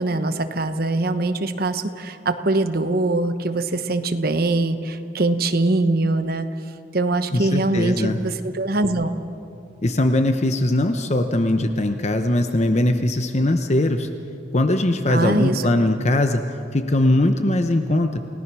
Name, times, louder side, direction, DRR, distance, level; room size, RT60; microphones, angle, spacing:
voice 1, 0.0-6.5 6.9-9.1 15.1-15.6, right 2 dB, 55° right, 9 dB, 1.1 m, -22 dB
voice 2, 7.3-8.2 9.8-14.1 14.5-16.4 16.7-18.2, left 1 dB, 35° left, 7 dB, 0.9 m, -20 dB
29.0 x 17.5 x 6.2 m, 2.6 s
head